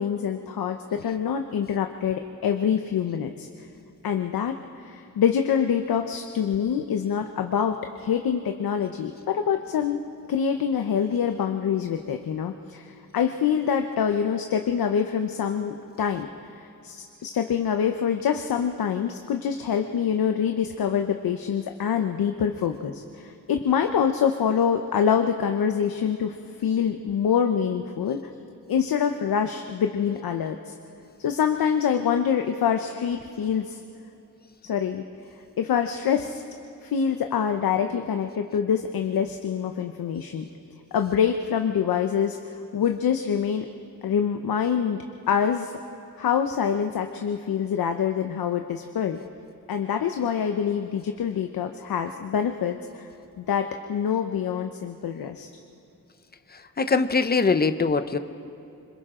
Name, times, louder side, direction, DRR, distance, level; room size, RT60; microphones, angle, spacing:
voice 1, 0.0-3.7 4.0-10.0 10.3-28.3 28.7-30.7 31.2-33.8 34.6-35.0 35.6-36.4 36.8-40.5 40.9-43.7 44.0-45.7 46.2-49.2 49.7-53.1 53.4-55.5, left 7 dB, 85° left, 5 dB, 0.9 m, -25 dB
voice 2, 56.5-58.2, left 4 dB, 25° left, 10 dB, 0.7 m, -22 dB
26.5 x 26.0 x 3.8 m, 2.8 s
wide cardioid pair, 155°, 35 cm